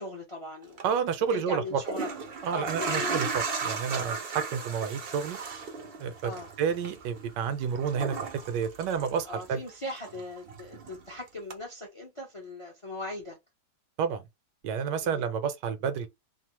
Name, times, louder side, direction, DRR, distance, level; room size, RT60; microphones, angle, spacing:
voice 1, 0.0-0.8 1.3-2.1 2.5-3.2 6.2-6.5 9.2-13.4 15.0-15.3, left 1 dB, 35° left, 0.5 m, -38 dB
sound 1, 0.6-0.8 1.7-9.7 10.0-11.1 11.5-11.6, right 4 dB, 60° right, 0.6 m, -36 dB
voice 2, 0.8-1.8 2.4-5.4 6.0-6.3 6.6-9.6 14.0-14.2 14.6-16.1, right 7 dB, 85° right, 1.3 m, -30 dB
3.0 x 2.1 x 2.9 m
omnidirectional pair, 1.8 m